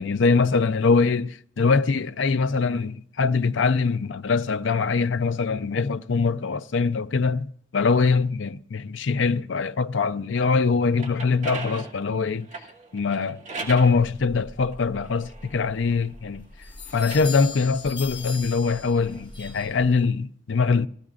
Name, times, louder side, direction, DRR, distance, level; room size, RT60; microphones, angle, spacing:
voice 1, 0.0-7.4 7.7-12.5 12.9-16.5 16.9-20.9, left 4 dB, 80° left, 0.6 m, -23 dB
sound 1, 10.7-14.0 14.7-16.4 16.9-19.2, right 3 dB, 40° right, 2.5 m, -39 dB
sound 2, 13.8-20.1, left 4 dB, 25° left, 1.6 m, -40 dB
21.5 x 15.0 x 2.5 m
head